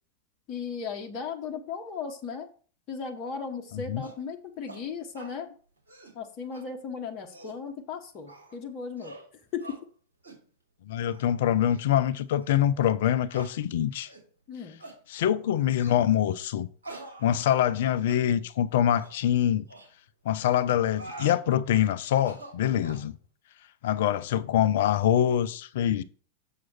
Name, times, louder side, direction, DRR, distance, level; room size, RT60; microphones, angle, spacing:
voice 1, 0.5-2.5 2.9-5.5 6.1-9.8 14.5-14.8, left 6 dB, 35° left, 1.1 m, -36 dB
sound 1, 4.0-4.2 4.7-4.8 5.1-5.4 5.8-6.2 6.5-6.6 7.1-7.6 8.3-8.6 9.0-9.3 9.6-9.8 10.2-10.4 11.0-11.2 11.7-11.8 12.4-12.5 13.3-13.5 14.0-14.3 14.8-15.0 15.8-16.0 16.8-17.8 18.1-18.2 18.8-19.1 19.7-19.9 20.7-21.4 22.1-23.1, right 2 dB, 75° right, 2.6 m, -45 dB
voice 2, 10.9-14.1 15.1-16.7 17.2-19.6 20.3-23.1 23.8-26.0, left 10 dB, 55° left, 0.5 m, -24 dB
7.4 x 6.2 x 4.3 m
figure-of-eight pair, 90°, 0 cm